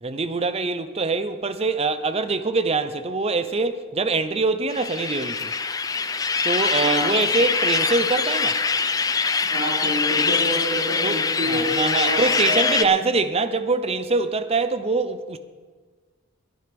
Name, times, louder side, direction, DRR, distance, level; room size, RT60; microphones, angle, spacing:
voice 1, 0.0-5.5 6.4-8.6 11.0-11.2 11.5-15.4, right 3 dB, 30° right, 0.6 m, -24 dB
sound 1, 4.7-12.8, left 5 dB, 15° left, 0.4 m, -23 dB
voice 2, 6.8-7.2 9.4-12.9, equal, 55° right, 3.2 m, -28 dB
21.0 x 9.9 x 3.5 m
head